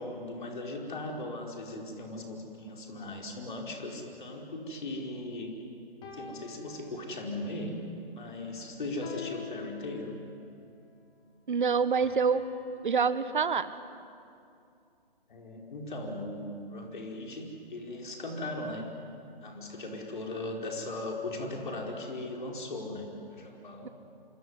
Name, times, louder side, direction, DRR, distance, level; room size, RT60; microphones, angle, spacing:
voice 1, 0.0-5.5 6.1-7.8 8.1-10.2 15.3-18.9 19.4-23.9, left 2 dB, 55° left, 1 dB, 5.0 m, -38 dB
sound 1, 3.7-5.4 6.0-7.5 9.0-10.5 12.0-13.5, left 5 dB, 15° left, 3.5 m, -47 dB
voice 2, 11.5-12.4 12.8-13.7 23.8-23.9, right 5 dB, 55° right, 14 dB, 1.3 m, -26 dB
27.0 x 23.0 x 9.7 m, 2.5 s
figure-of-eight pair, 140°, 30 cm